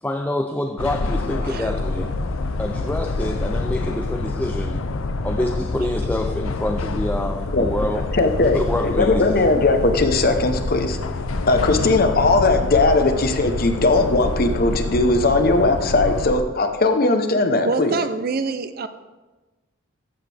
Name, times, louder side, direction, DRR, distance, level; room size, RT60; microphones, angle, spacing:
voice 1, 0.0-2.1 2.6-4.9 5.2-8.1 8.5-9.4, left 1 dB, 10° left, 0.3 m, -26 dB
sound 1, 0.8-16.4, left 2 dB, 90° left, 0.6 m, -26 dB
voice 2, 8.1-11.0 11.5-17.9, left 2 dB, 45° left, 0.9 m, -19 dB
voice 3, 17.6-18.9, right 4 dB, 45° right, 0.5 m, -25 dB
14.5 x 7.3 x 3.4 m
head